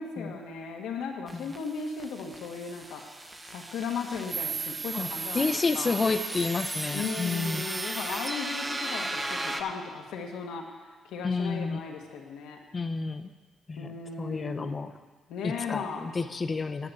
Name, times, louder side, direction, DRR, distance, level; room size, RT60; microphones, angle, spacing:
voice 1, 0.0-3.0 3.5-6.1 6.9-12.6 13.7-14.8 15.3-16.1, left 5 dB, 85° left, 1 dB, 1.5 m, -36 dB
sound 1, 1.3-9.6, right 2 dB, 15° right, 0.8 m, -35 dB
voice 2, 5.3-7.6 11.2-11.8 12.7-13.3 13.7-13.9 14.2-14.9 15.4-16.9, left 4 dB, 35° left, 10 dB, 0.6 m, -30 dB
10.5 x 5.8 x 7.9 m, 1.3 s
cardioid pair, 90°, 0 cm